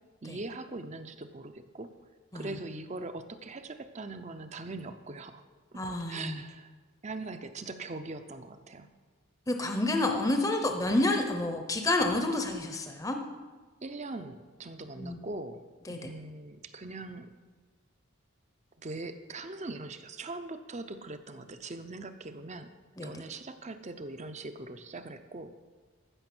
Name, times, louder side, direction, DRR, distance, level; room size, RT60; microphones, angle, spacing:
voice 1, 0.2-1.9 2.3-5.4 5.7-5.8 6.1-6.7 7.0-8.9 13.8-17.3 18.8-22.7 23.0-25.5, right 2 dB, 35° right, 9 dB, 0.6 m, -41 dB
voice 2, 5.7-6.4 9.5-13.2 15.0-15.2 15.9-16.1 23.0-23.1, left 2 dB, 15° left, 4 dB, 0.7 m, -29 dB
14.5 x 6.2 x 6.1 m, 1.4 s
head